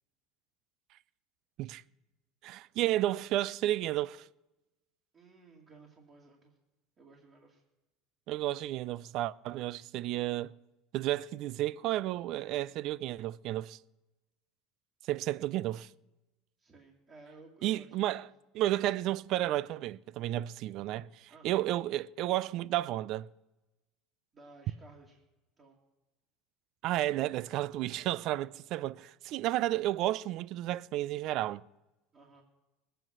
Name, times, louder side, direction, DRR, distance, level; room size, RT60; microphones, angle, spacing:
voice 1, 2.4-4.3 8.3-10.5 10.9-13.8 15.1-15.9 17.6-18.2 18.5-23.3 26.8-31.6, right 14 dB, 55° right, 0.4 m, -32 dB
voice 2, 5.1-6.6 7.0-7.6 16.6-18.3 21.3-21.7 24.3-25.2 25.6-25.8 32.1-32.4, right 3 dB, 30° right, 2.6 m, -56 dB
20.5 x 9.1 x 6.0 m
supercardioid pair, 130°, 0 cm